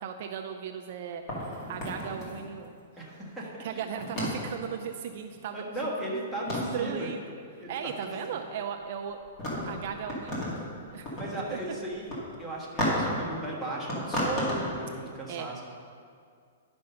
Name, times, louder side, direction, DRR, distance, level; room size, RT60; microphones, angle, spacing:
voice 1, 0.0-2.7 3.6-5.6 6.5-7.2 7.7-9.2 9.5-10.5 10.9-11.2 11.5-11.6 15.3-15.5, right 8 dB, 45° right, 4 dB, 0.5 m, -37 dB
sound 1, 1.3-2.8 3.9-4.5 6.0-6.1 6.4-6.9 8.6-8.8 9.2-10.6 10.9-11.4 11.9-12.1 12.8-13.3 13.9-14.8, left 1 dB, 25° left, 2.2 m, -32 dB
voice 2, 3.0-3.6 5.5-7.1 7.6-7.7 8.3-8.4 10.9-12.1 12.4-15.6, right 1 dB, 5° left, -5 dB, 1.4 m, -36 dB
10.5 x 5.3 x 5.6 m, 2.2 s
hypercardioid pair, 165°, 0 cm